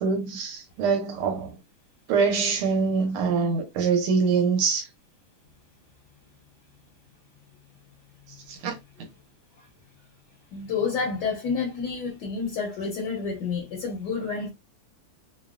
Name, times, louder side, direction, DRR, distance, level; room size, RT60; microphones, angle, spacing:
voice 1, 0.0-1.5 2.1-4.8 8.5-8.8, right 5 dB, 80° right, 1.6 m, -24 dB
voice 2, 10.5-14.5, left 5 dB, 70° left, 1.0 m, -29 dB
3.5 x 2.1 x 2.3 m
omnidirectional pair, 2.4 m